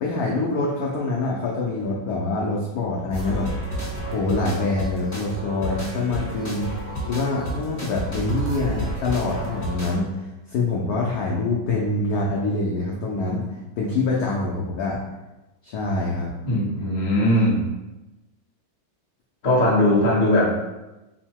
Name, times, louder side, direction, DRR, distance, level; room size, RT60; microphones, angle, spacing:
voice 1, 0.0-3.5 4.1-6.8 7.1-15.0 15.6-16.3, left 3 dB, 90° left, -3 dB, 0.8 m, -25 dB
sound 1, 3.1-10.0, right 1 dB, 30° left, 1.1 m, -31 dB
voice 2, 16.4-17.6 19.4-20.5, left 1 dB, 70° left, -5 dB, 0.4 m, -19 dB
3.7 x 2.1 x 4.4 m, 1.0 s
omnidirectional pair, 2.2 m